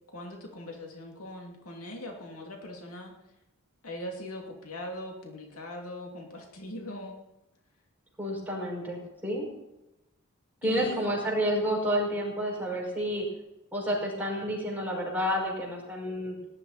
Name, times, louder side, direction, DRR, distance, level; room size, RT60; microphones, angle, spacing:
voice 1, 0.1-3.1 3.8-7.2 10.6-11.1, left 1 dB, 75° left, 1 dB, 2.7 m, -40 dB
voice 2, 8.2-9.5 10.6-13.3 13.7-16.4, equal, 10° right, -3 dB, 5.4 m, -30 dB
18.5 x 12.0 x 4.2 m, 0.94 s
head